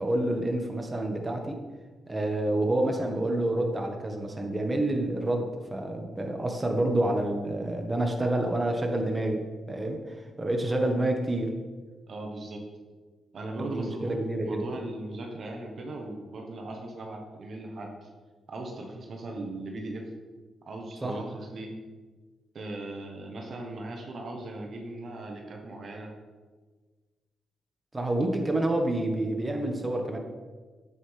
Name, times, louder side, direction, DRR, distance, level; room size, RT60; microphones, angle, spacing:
voice 1, 0.0-1.6 2.1-11.5 13.6-14.7 21.0-21.2 27.9-30.2, right 1 dB, 25° right, 3 dB, 1.6 m, -28 dB
voice 2, 12.1-12.6 13.3-18.1 18.5-20.0 20.6-21.7 22.5-26.1, right 2 dB, 60° right, 1 dB, 1.4 m, -38 dB
9.3 x 8.7 x 3.6 m, 1.4 s
supercardioid pair, 50°, 0 cm